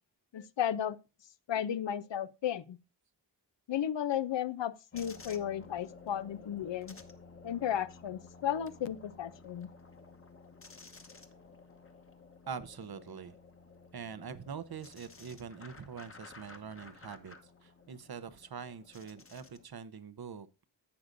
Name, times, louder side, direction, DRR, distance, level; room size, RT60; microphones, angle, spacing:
voice 1, 0.3-1.0 1.5-2.8 3.7-7.0 7.4-9.7, left 10 dB, 85° left, 0.6 m, -34 dB
sound 1, 4.9-19.7, left 3 dB, 30° left, 1.1 m, -54 dB
voice 2, 12.5-13.4 13.9-17.3 17.6-20.5, right 6 dB, 60° right, 0.7 m, -44 dB
11.5 x 7.8 x 2.6 m
wide cardioid pair, 100°, 43 cm